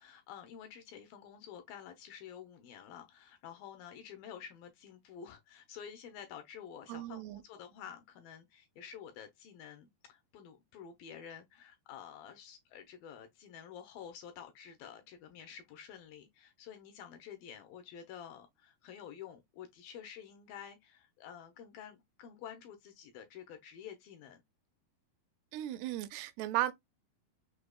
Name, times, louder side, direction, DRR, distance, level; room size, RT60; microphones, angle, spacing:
voice 1, 0.0-24.4, left 8 dB, 80° left, 2.2 m, -50 dB
voice 2, 6.9-7.4 25.5-26.7, right 15 dB, 85° right, 2.5 m, -35 dB
6.5 x 2.8 x 2.3 m
omnidirectional pair, 4.6 m